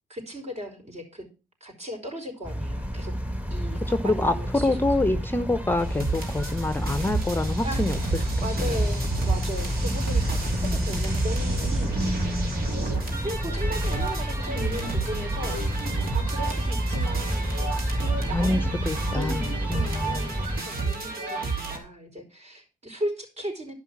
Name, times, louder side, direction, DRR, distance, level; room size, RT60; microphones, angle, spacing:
voice 1, 0.1-1.3 1.6-3.1 3.5-5.3 7.6-7.9 8.1-12.3 12.8-15.6 16.1-17.7 18.0-18.7 19.1-23.7, equal, 40° right, 3 dB, 4.6 m, -37 dB
sound 1, 2.4-20.6, equal, 10° right, 1.5 m, -29 dB
voice 2, 3.9-8.0 8.6-8.9 10.6-10.9 11.9-12.6 18.3-19.4 19.7-20.2, left 2 dB, 10° left, 11 dB, 0.8 m, -27 dB
sound 2, 5.8-21.8, right 4 dB, 65° right, 2.6 m, -31 dB
11.5 x 5.5 x 6.1 m, 0.32 s
hypercardioid pair, 55°, 17 cm